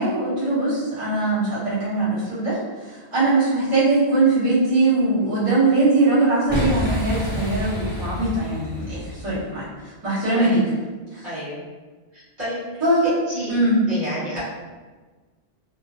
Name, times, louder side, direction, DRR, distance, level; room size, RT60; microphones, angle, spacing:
voice 1, 0.0-10.6 11.1-11.2 12.8-13.1 13.5-13.8, right 2 dB, 30° right, -13 dB, 1.3 m, -21 dB
Boom, 6.5-9.5, left 1 dB, 10° right, 0.9 m, -28 dB
voice 2, 11.2-11.6 12.1-13.5 13.9-14.5, equal, 45° right, -13 dB, 1.3 m, -30 dB
3.0 x 2.5 x 2.4 m, 1.3 s
omnidirectional pair, 1.2 m